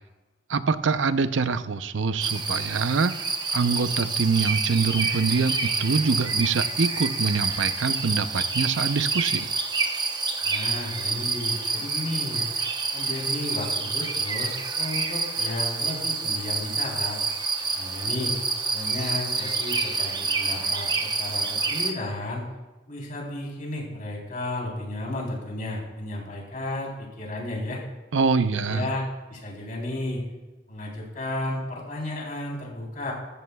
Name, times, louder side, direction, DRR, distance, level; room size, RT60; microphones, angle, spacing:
voice 1, 0.5-3.2 3.5-9.5 28.1-28.9, right 4 dB, 90° right, 12 dB, 0.6 m, -24 dB
sound 1, 2.2-21.9, right 4 dB, 25° right, 0.9 m, -28 dB
voice 2, 10.4-12.5 12.9-17.2 17.6-18.4 18.7-22.4 22.9-27.8 28.5-30.2 30.7-33.1, left 1 dB, 45° left, -2 dB, 3.5 m, -33 dB
15.0 x 14.0 x 2.3 m, 1.2 s
head